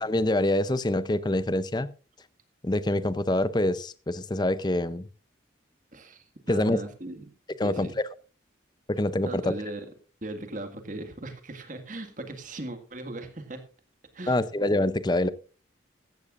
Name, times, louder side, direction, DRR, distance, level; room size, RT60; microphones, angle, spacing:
voice 1, 0.0-1.9 2.6-5.1 6.5-6.8 7.6-8.1 8.9-9.5 14.3-15.3, left 1 dB, 20° left, 15 dB, 0.5 m, -25 dB
voice 2, 5.9-7.3 7.6-7.9 9.2-9.9 10.2-13.6 14.1-14.4, right 2 dB, 40° right, 8 dB, 1.8 m, -38 dB
15.5 x 13.5 x 2.5 m, 0.36 s
head